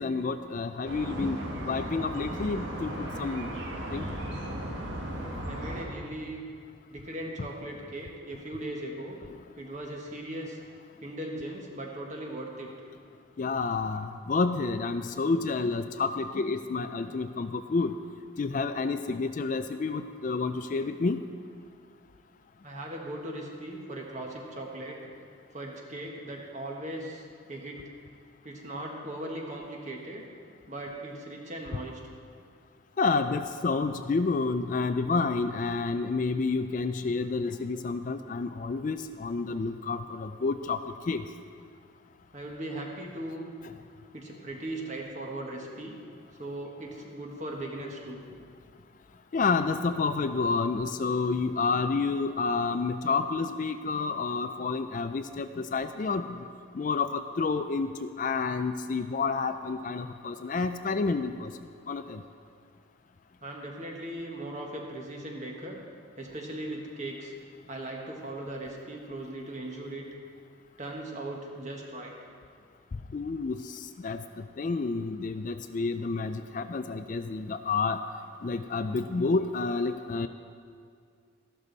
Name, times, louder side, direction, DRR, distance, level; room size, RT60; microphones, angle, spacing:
voice 1, 0.0-3.5 3.9-4.1 13.4-17.9 18.4-21.2 33.0-40.8 41.1-41.2 49.3-56.4 56.7-61.5 61.9-62.2 73.1-78.0 78.4-80.3, left 4 dB, 40° left, 9 dB, 0.3 m, -29 dB
sound 1, 0.9-5.9, right 1 dB, 60° right, 1.8 m, -36 dB
voice 2, 5.5-6.4 6.9-9.2 9.6-10.6 11.0-12.7 22.6-25.0 25.5-27.9 28.4-30.3 30.7-32.0 38.6-38.8 42.3-43.5 44.1-46.0 46.4-48.2 63.4-65.8 66.2-67.3 67.7-70.0 70.8-72.1, right 1 dB, 35° right, 0 dB, 1.5 m, -38 dB
13.5 x 12.0 x 4.1 m, 2.2 s
head